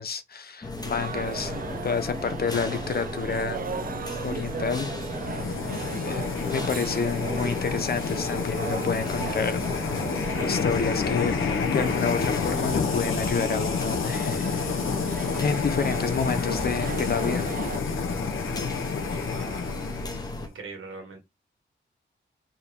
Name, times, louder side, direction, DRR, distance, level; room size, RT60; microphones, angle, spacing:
voice 1, 0.0-3.6 4.2-4.9 6.0-9.6 10.4-14.8 15.4-17.5, left 5 dB, 50° left, 0.6 m, -29 dB
sound 1, 0.6-20.5, left 2 dB, 20° left, 0.9 m, -35 dB
sound 2, 0.8-17.8, right 6 dB, 45° right, 0.4 m, -37 dB
sound 3, 5.0-20.4, left 6 dB, 85° left, 0.8 m, -29 dB
voice 2, 19.0-19.7 20.4-21.2, right 4 dB, 80° right, 1.4 m, -42 dB
4.8 x 2.8 x 3.4 m
wide cardioid pair, 160°, 21 cm